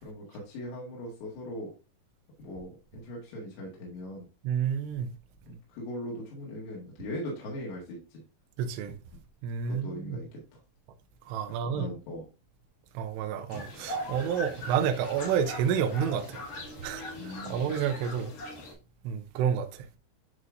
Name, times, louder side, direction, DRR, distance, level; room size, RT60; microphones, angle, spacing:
voice 1, 0.0-1.7 2.4-4.3 5.5-8.2 9.1-9.2 9.7-10.6 11.6-12.2 17.2-17.6, left 1 dB, 80° left, 3.8 m, -40 dB
voice 2, 4.4-5.1 8.6-9.0 9.4-10.2 11.3-11.9 12.9-16.4 16.8-18.3 19.0-19.9, right 8 dB, 80° right, 2.8 m, -30 dB
sound 1, 13.5-18.7, equal, 55° left, 3.2 m, -40 dB
10.5 x 3.6 x 2.5 m
omnidirectional pair, 5.0 m